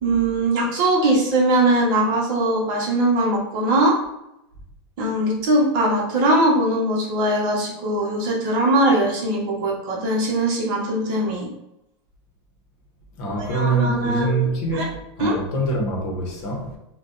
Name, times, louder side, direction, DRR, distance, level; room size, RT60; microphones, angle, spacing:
voice 1, 0.0-4.0 5.0-11.5 13.5-14.8 15.2-15.4, right 1 dB, 45° right, 1.0 m, -21 dB
voice 2, 13.2-16.8, right 2 dB, 40° left, 0.9 m, -24 dB
2.6 x 2.3 x 3.7 m
supercardioid pair, 160°, 15 cm